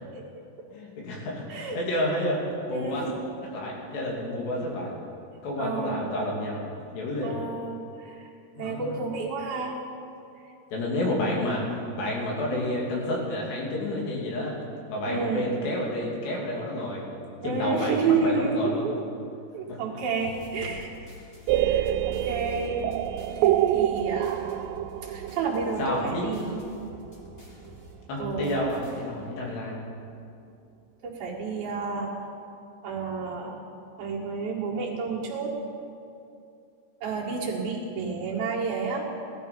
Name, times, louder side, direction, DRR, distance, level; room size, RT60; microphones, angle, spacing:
voice 1, 0.1-0.4 1.5-1.8 2.7-3.2 5.6-6.1 7.2-8.3 8.6-9.8 15.1-15.5 17.4-19.0 19.5-20.9 21.6-22.9 23.4-24.5 25.0-26.6 28.2-28.5 31.0-32.1 32.8-33.6 34.0-35.6 37.0-39.1, right 4 dB, 65° right, -4 dB, 3.7 m, -30 dB
voice 2, 0.7-3.0 3.5-4.9 5.4-7.4 8.6-9.0 10.7-11.6 12.0-14.6 14.9-17.0 17.4-18.8 19.7-19.8 25.8-26.3 28.1-29.8, left 1 dB, 75° left, -3 dB, 4.8 m, -30 dB
sound 1, 20.2-29.3, equal, 25° left, 1.4 m, -49 dB
sound 2, 21.5-27.2, right 12 dB, 90° right, 2.8 m, -27 dB
17.5 x 13.5 x 5.4 m, 2.6 s
omnidirectional pair, 4.9 m